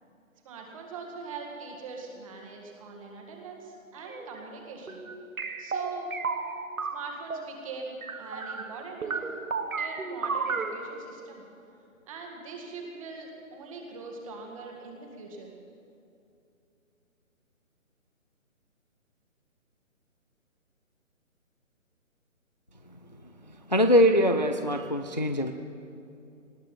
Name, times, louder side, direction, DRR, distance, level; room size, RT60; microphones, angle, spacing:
voice 1, 0.4-5.0 5.6-6.1 6.9-9.3 9.8-11.4 12.1-15.5, right 4 dB, 25° right, 1 dB, 1.9 m, -42 dB
sound 1, 3.9-4.4 4.9-7.5 8.0-8.8 9.0-10.7, right 4 dB, 85° right, 1.4 m, -33 dB
voice 2, 23.5-25.5, equal, 35° left, 7 dB, 0.4 m, -23 dB
19.5 x 15.5 x 4.3 m, 2.6 s
hypercardioid pair, 160°, 41 cm